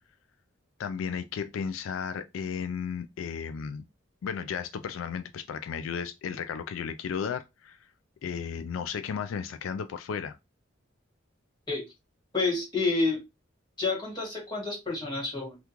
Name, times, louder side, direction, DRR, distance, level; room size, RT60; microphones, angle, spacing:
voice 1, 0.8-3.8 4.2-7.8 8.2-10.4, left 6 dB, 85° left, 0.3 m, -34 dB
voice 2, 12.3-13.2 13.8-15.6, left 3 dB, 20° left, 1.8 m, -29 dB
3.5 x 2.4 x 2.9 m
head